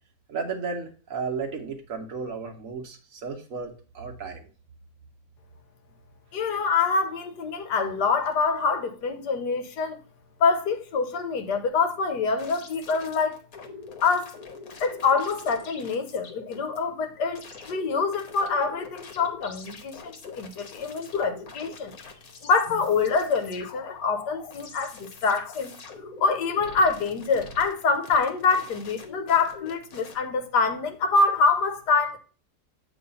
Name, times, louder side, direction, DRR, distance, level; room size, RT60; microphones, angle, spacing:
voice 1, 0.3-4.4, right 5 dB, 60° right, 1.1 m, -34 dB
voice 2, 6.3-10.0 10.4-13.4 14.0-14.4 14.8-21.9 22.4-25.7 26.2-32.2, left 4 dB, 75° left, 1.4 m, -25 dB
sound 1, 12.4-16.8 17.3-30.2, left 4 dB, 60° left, 1.4 m, -44 dB
8.0 x 3.2 x 5.2 m
omnidirectional pair, 1.8 m